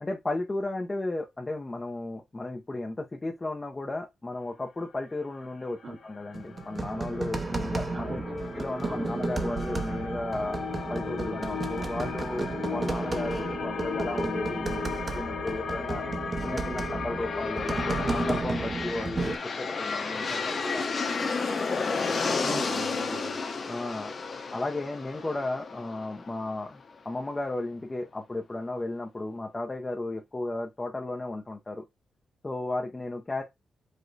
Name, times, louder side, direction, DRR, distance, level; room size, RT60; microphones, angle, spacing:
voice 1, 0.0-8.2 8.5-10.6 10.9-16.0 16.4-20.9 22.5-22.6 23.7-24.1 24.5-31.9 32.4-33.4, left 2 dB, 20° left, 0.5 m, -34 dB
sound 1, 5.2-18.4, left 6 dB, 85° left, 1.4 m, -36 dB
sound 2, 6.3-19.4, right 3 dB, 30° right, 0.7 m, -33 dB
voice 2, 7.9-8.4 8.8-9.2 22.4-23.4, right 3 dB, 45° right, 1.1 m, -40 dB
sound 3, 17.1-26.9, left 4 dB, 40° left, 0.9 m, -32 dB
4.9 x 2.1 x 3.9 m
wide cardioid pair, 155°, 0 cm